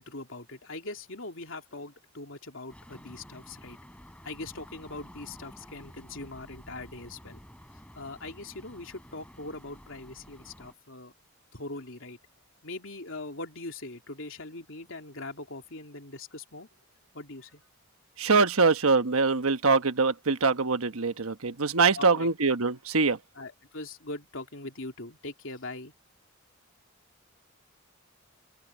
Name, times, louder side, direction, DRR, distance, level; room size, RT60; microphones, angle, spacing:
voice 1, 0.0-3.8 4.2-7.4 7.9-11.1 11.5-12.2 12.6-16.7 17.1-17.6 21.9-22.3 23.3-25.9, left 2 dB, 65° left, 3.2 m, -41 dB
sound 1, 2.7-10.7, equal, 5° left, 4.6 m, -51 dB
voice 2, 18.2-23.2, right 4 dB, 80° right, 1.2 m, -23 dB
open air
head